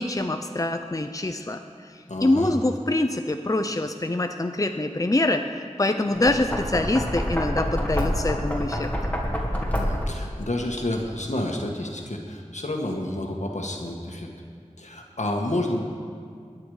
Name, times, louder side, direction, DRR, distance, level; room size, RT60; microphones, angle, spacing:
voice 1, 0.0-8.9, left 2 dB, 30° left, 6 dB, 0.6 m, -25 dB
voice 2, 2.1-2.5 9.7-14.3 14.8-15.8, left 1 dB, 80° left, 1 dB, 1.7 m, -29 dB
Knock, 6.1-10.3, equal, 10° left, 2.4 m, -27 dB
22.0 x 9.6 x 5.0 m, 2.2 s
wide cardioid pair, 40°, 12 cm